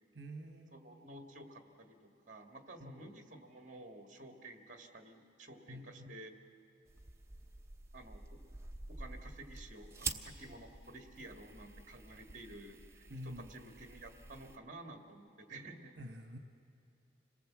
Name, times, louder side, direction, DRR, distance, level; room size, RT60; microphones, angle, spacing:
voice 1, 0.1-0.9 2.8-3.1 5.7-6.2 13.1-13.5 16.0-16.4, equal, 60° right, 5 dB, 1.3 m, -48 dB
voice 2, 0.7-6.3 7.9-8.4 8.9-15.9, right 2 dB, 40° right, 5 dB, 1.8 m, -52 dB
sound 1, 6.9-14.6, right 4 dB, 15° right, 0.7 m, -48 dB
26.5 x 18.5 x 7.5 m, 2.8 s
head